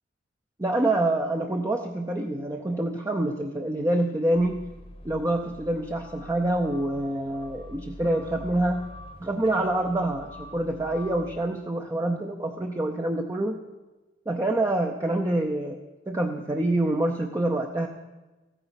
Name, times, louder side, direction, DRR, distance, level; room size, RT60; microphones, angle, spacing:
voice 1, 0.6-4.6 5.0-8.8 9.2-13.6 14.3-15.8 16.1-17.9, right 1 dB, 15° right, 3 dB, 0.6 m, -26 dB
sound 1, 4.3-11.4, left 1 dB, 30° left, 1.0 m, -45 dB
14.5 x 9.2 x 5.8 m, 1.2 s
head